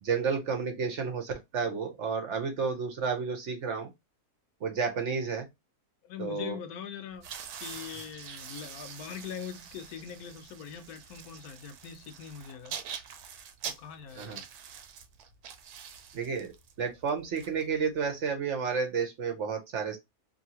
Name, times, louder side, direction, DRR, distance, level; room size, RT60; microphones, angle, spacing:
voice 1, 0.0-3.9 4.6-5.5 6.2-6.6 14.2-14.4 16.1-20.0, right 5 dB, 60° right, 0.9 m, -31 dB
voice 2, 6.0-7.3 7.6-12.8 13.6-14.5, left 7 dB, 75° left, 1.1 m, -42 dB
sound 1, 7.1-18.2, right 8 dB, 80° right, 1.1 m, -45 dB
2.7 x 2.6 x 2.8 m
omnidirectional pair, 1.6 m